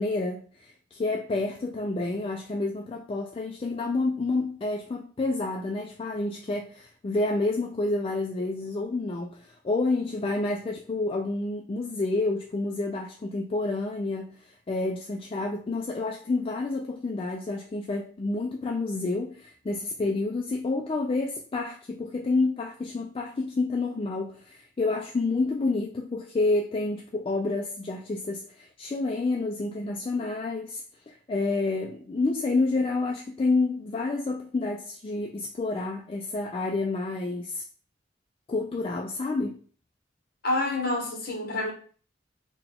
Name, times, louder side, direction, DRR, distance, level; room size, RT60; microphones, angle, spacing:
voice 1, 0.0-37.6 38.5-39.6, left 3 dB, 30° left, 0.3 m, -29 dB
voice 2, 40.4-41.7, left 2 dB, 50° left, 1.1 m, -28 dB
3.9 x 2.2 x 3.5 m
head